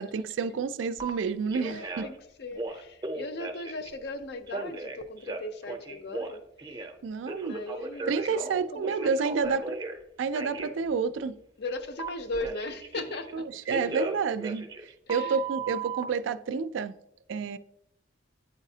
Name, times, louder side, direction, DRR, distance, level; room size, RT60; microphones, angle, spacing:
voice 1, 0.0-2.1 7.0-7.6 8.1-9.8 10.2-11.4 13.3-14.7 15.1-16.9 17.3-17.6, right 5 dB, 75° right, 0.3 m, -29 dB
Telephone, 1.0-1.1 1.5-2.2 2.5-3.9 4.5-6.9 7.3-10.0 10.3-10.7 12.0-13.3 13.7-16.0, right 3 dB, 20° right, 0.5 m, -36 dB
voice 2, 1.6-6.5 7.4-9.6 11.6-13.5 13.8-13.9 15.1-15.4, left 2 dB, 60° left, 0.5 m, -38 dB
9.0 x 4.0 x 2.7 m
head